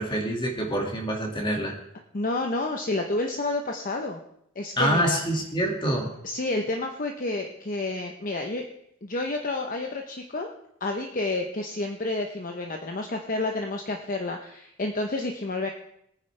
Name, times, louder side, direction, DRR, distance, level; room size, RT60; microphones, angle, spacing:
voice 1, 0.0-1.8 4.8-6.1, right 1 dB, 20° left, 1 dB, 2.1 m, -26 dB
voice 2, 2.1-4.2 4.6-5.2 6.2-8.7 9.0-10.5 10.8-15.7, left 2 dB, 40° left, 3 dB, 0.9 m, -30 dB
22.5 x 9.5 x 3.4 m, 0.74 s
head